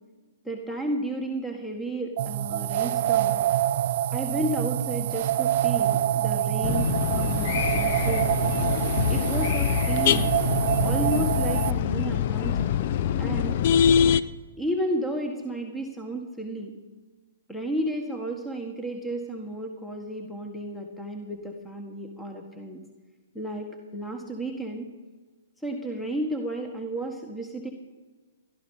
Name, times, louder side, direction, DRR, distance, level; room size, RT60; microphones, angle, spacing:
voice 1, 0.4-3.4 4.1-8.3 9.1-10.3 10.8-12.8 13.2-13.5 14.6-16.7 17.5-22.8 23.3-24.9 25.6-27.7, right 1 dB, 5° left, 3 dB, 1.7 m, -32 dB
sound 1, 2.2-11.7, right 12 dB, 50° right, 0.4 m, -26 dB
sound 2, 6.6-14.2, left 9 dB, 50° left, 0.6 m, -24 dB
18.0 x 12.5 x 5.6 m, 1.3 s
hypercardioid pair, 125°, 0 cm